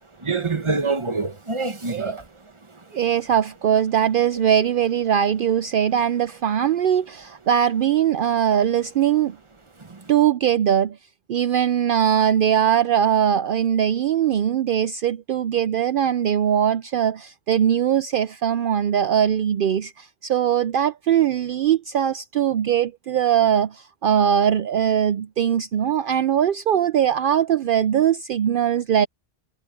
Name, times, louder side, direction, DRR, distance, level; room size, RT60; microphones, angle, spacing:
voice 1, 0.2-2.2 9.8-10.1, right 4 dB, 30° right, 1.2 m, -26 dB
voice 2, 1.9-2.2 2.9-9.4 10.1-11.0 11.3-29.1, right 9 dB, 60° right, 0.6 m, -21 dB
omnidirectional pair, 1.1 m